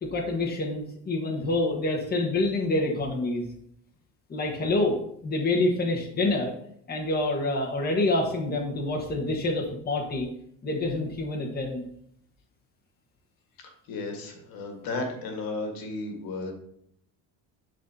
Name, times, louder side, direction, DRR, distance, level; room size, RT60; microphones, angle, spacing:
voice 1, 0.0-3.5 4.3-5.0 5.2-6.5 6.9-10.3 10.6-11.8, left 2 dB, 25° left, -1 dB, 1.3 m, -27 dB
voice 2, 13.9-16.5, left 2 dB, 70° left, 3 dB, 1.6 m, -34 dB
10.5 x 4.0 x 2.8 m, 0.70 s
cardioid pair, 115°, 37 cm